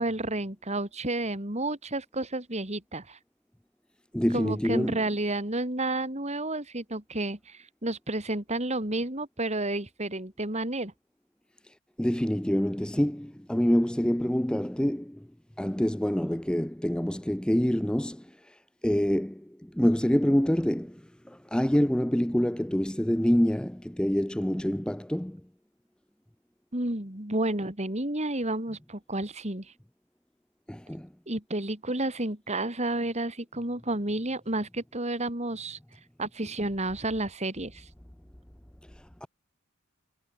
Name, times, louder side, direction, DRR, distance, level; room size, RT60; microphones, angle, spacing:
voice 1, 0.0-3.2 4.3-10.9 26.7-29.7 31.3-35.8 36.2-37.8, right 2 dB, 30° right, 3.3 m, -31 dB
voice 2, 4.1-5.0 11.6-15.3 15.6-25.4 30.7-31.1 38.9-39.3, equal, 5° left, 0.5 m, -27 dB
head